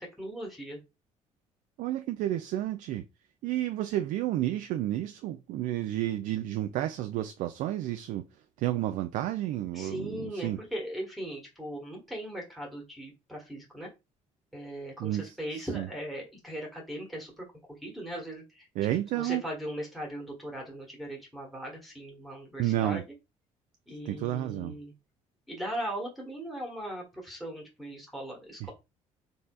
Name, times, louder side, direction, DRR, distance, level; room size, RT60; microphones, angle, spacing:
voice 1, 0.2-0.8 9.7-13.9 14.5-23.0 23.9-24.9 25.5-28.7, right 1 dB, ahead, 1.5 m, -39 dB
voice 2, 1.8-3.0 3.4-8.2 8.6-10.6 15.0-15.9 18.8-19.4 22.6-23.0 24.1-24.7 28.6-28.7, right 13 dB, 50° right, 0.4 m, -31 dB
4.1 x 3.9 x 2.3 m
figure-of-eight pair, 50°, 17 cm